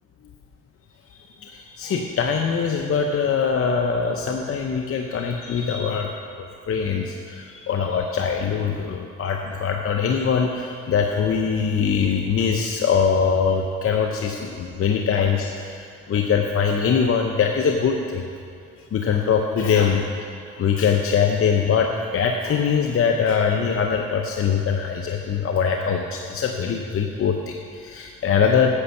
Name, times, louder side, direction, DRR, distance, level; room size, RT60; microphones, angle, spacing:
voice 1, 1.4-6.1 6.4-15.8 16.1-18.3 18.9-20.2 20.5-28.7, left 6 dB, 45° left, 3 dB, 0.7 m, -22 dB
10.0 x 6.4 x 7.1 m, 2.3 s
cardioid pair, 90°, 30 cm